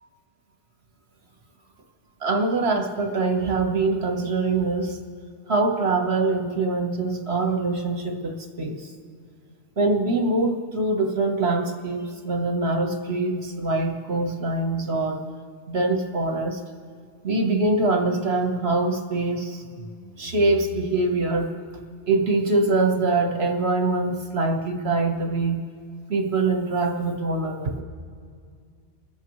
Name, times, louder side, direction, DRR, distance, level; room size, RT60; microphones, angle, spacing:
voice 1, 2.2-5.0 5.5-8.9 9.8-15.3 15.7-16.6 17.2-19.6 20.2-21.5 22.1-25.6 26.1-27.8, right 3 dB, 60° right, 3 dB, 1.6 m, -24 dB
30.0 x 15.0 x 3.2 m, 2.2 s
omnidirectional pair, 1.2 m